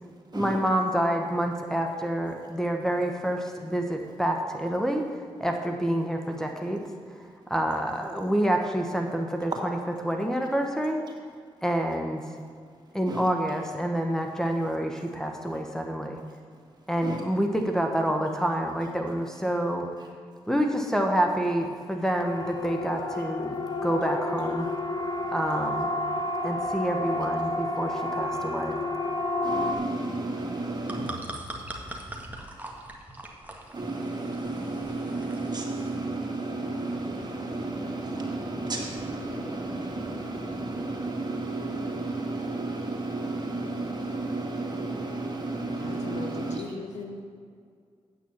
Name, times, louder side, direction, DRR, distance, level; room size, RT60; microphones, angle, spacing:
voice 1, 0.0-6.9 7.5-9.8 10.0-11.0 11.6-12.3 12.9-16.2 16.9-19.9 20.5-24.7 25.3-25.9 26.4-28.8, right 1 dB, 5° left, 3 dB, 1.3 m, -28 dB
Siren, 22.2-29.7, left 1 dB, 35° left, 1.4 m, -30 dB
voice 2, 29.4-31.1 33.7-46.6, right 2 dB, 35° right, -1 dB, 2.6 m, -32 dB
sound 1, 30.6-36.0, right 1 dB, 15° right, 1.8 m, -41 dB
voice 3, 45.8-47.2, left 3 dB, 75° left, 4 dB, 1.1 m, -38 dB
8.8 x 6.2 x 7.3 m, 2.2 s
supercardioid pair, 40°, 12 cm